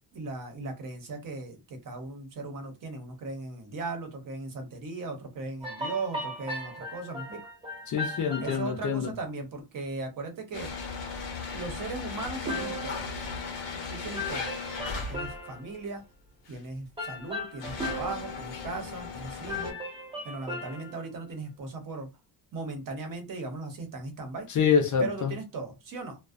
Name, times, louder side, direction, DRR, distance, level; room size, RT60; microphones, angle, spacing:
voice 1, 0.1-7.4 8.4-10.7 11.5-13.0 13.9-14.5 15.1-16.0 16.5-19.8 20.2-22.1 22.5-24.5 25.0-26.2, right 3 dB, 50° right, 0.7 m, -37 dB
sound 1, 5.6-8.8 12.5-13.8 14.1-15.8 17.0-19.2 19.5-21.1, left 1 dB, 15° right, 0.5 m, -37 dB
voice 2, 7.9-9.1 24.5-25.3, left 6 dB, 45° left, 0.5 m, -26 dB
sound 2, 10.5-15.5 16.5-16.6 17.3-19.7, left 4 dB, 75° left, 0.8 m, -37 dB
2.4 x 2.1 x 2.4 m
cardioid pair, 160°, 43 cm